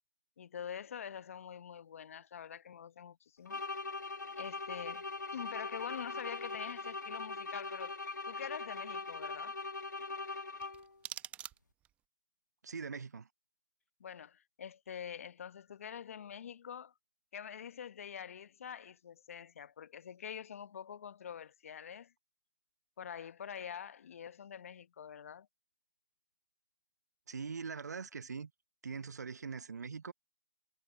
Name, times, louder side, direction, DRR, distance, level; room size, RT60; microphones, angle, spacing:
voice 1, 0.4-3.6 4.4-5.0 5.3-8.0 8.3-9.5 14.0-16.9 17.3-22.1 23.0-25.5, left 8 dB, 50° left, 1.0 m, -45 dB
sound 1, 3.5-11.0, left 3 dB, 85° left, 1.6 m, -41 dB
sound 2, 10.6-12.0, right 13 dB, 15° right, 0.8 m, -47 dB
voice 2, 12.6-13.3 27.3-28.5 28.8-30.1, right 5 dB, 70° right, 0.9 m, -42 dB
figure-of-eight pair, 145°, 9 cm